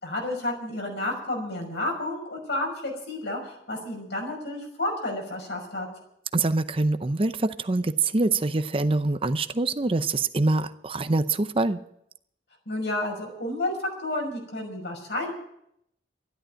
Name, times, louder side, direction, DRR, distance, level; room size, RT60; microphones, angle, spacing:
voice 1, 0.0-5.9 12.7-13.7 14.0-15.3, left 1 dB, 70° left, 1 dB, 5.8 m, -31 dB
voice 2, 6.3-11.8, right 2 dB, 30° right, 11 dB, 0.6 m, -25 dB
13.0 x 11.5 x 8.7 m, 0.76 s
head